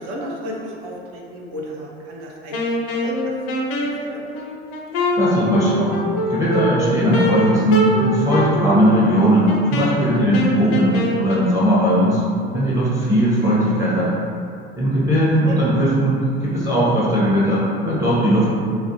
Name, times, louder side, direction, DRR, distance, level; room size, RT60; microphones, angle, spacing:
voice 1, 0.0-3.3 4.0-4.2 15.5-15.6, right 1 dB, 55° right, -2 dB, 0.6 m, -33 dB
Wind instrument woodwind instrument, 2.5-11.5, equal, 60° left, 0.5 m, -24 dB
voice 2, 5.2-6.0 6.3-12.2 12.5-14.1 14.8-18.5, equal, 10° right, -8 dB, 0.7 m, -18 dB
2.4 x 2.1 x 2.7 m, 2.4 s
hypercardioid pair, 70°, 32 cm